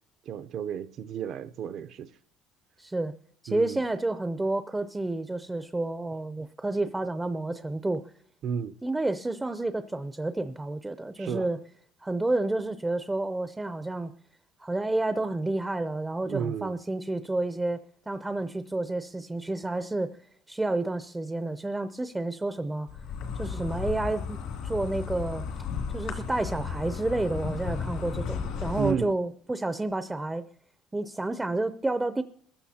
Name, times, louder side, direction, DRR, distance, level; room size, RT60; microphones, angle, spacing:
voice 1, 0.3-2.1 3.5-3.8 8.4-8.8 11.2-11.5 16.2-16.7 28.8-29.1, right 8 dB, 55° right, 0.6 m, -32 dB
voice 2, 2.8-3.1 3.4-8.0 8.8-11.6 12.0-14.1 14.6-20.2 20.5-22.9 23.4-25.5 25.9-30.4 30.9-32.2, right 2 dB, 10° right, 0.5 m, -30 dB
Insect, 22.9-28.9, left 6 dB, 80° left, 2.4 m, -34 dB
22.5 x 14.5 x 2.8 m
cardioid pair, 130°, 0 cm